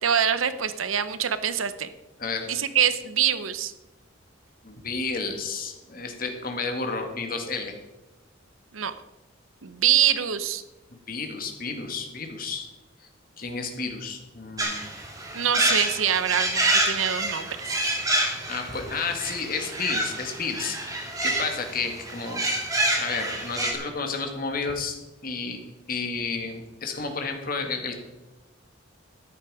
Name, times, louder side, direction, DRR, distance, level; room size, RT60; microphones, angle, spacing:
voice 1, 0.0-1.9 2.5-3.7 8.7-8.9 9.6-10.6 15.3-17.8, right 9 dB, 85° right, 13 dB, 0.8 m, -25 dB
voice 2, 4.6-7.7 10.9-12.7 13.0-13.1 13.4-14.8 18.5-20.8 21.2-22.4 23.0-25.0 25.2-25.6 25.9-27.9, left 4 dB, 45° left, 4 dB, 1.9 m, -31 dB
sound 1, 14.6-23.7, right 2 dB, 15° right, 2.1 m, -27 dB
13.0 x 10.5 x 4.9 m, 1.1 s
head